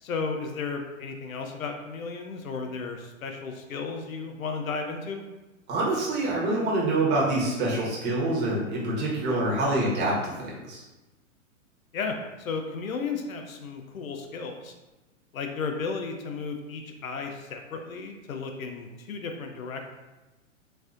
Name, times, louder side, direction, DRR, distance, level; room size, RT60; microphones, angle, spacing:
voice 1, 0.0-5.2 11.9-14.7 15.3-19.8, left 4 dB, 85° left, 4 dB, 0.6 m, -34 dB
voice 2, 5.7-10.8, right 2 dB, 25° right, -5 dB, 1.1 m, -26 dB
4.0 x 2.6 x 2.4 m, 1.1 s
hypercardioid pair, 120°, 40 cm